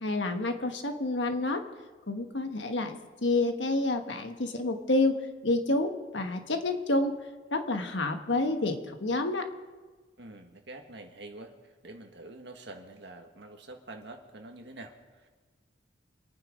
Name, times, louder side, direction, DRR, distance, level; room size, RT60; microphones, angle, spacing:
voice 1, 0.0-1.6 2.1-3.0 3.2-5.1 5.4-7.1 7.5-9.5, left 2 dB, 75° left, 6 dB, 1.4 m, -28 dB
voice 2, 10.2-15.3, right 2 dB, 65° right, 3 dB, 1.8 m, -46 dB
25.5 x 9.4 x 5.1 m, 1.3 s
head